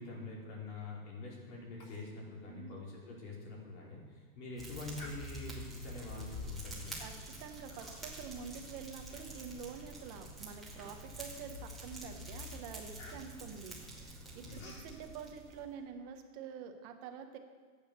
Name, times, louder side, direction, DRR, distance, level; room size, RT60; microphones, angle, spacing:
voice 1, 0.0-6.9 14.4-14.7, left 2 dB, 50° left, -3 dB, 4.9 m, -45 dB
Human voice, 1.8-2.1 2.4-2.5 3.1-3.2 3.7-4.0 4.9-5.7 6.4-6.7 7.7-8.3 8.7-9.7 10.2-10.3 10.8-11.3 11.8-12.1 12.3-14.9, left 2 dB, 65° left, 3.2 m, -56 dB
voice 2, 2.5-2.8 7.0-7.1 7.4-17.4, right 7 dB, 25° right, 5 dB, 1.1 m, -47 dB
Fire, 4.6-15.7, equal, ahead, 2.0 m, -47 dB
14.0 x 8.9 x 6.6 m, 1.5 s
supercardioid pair, 170°, 45 cm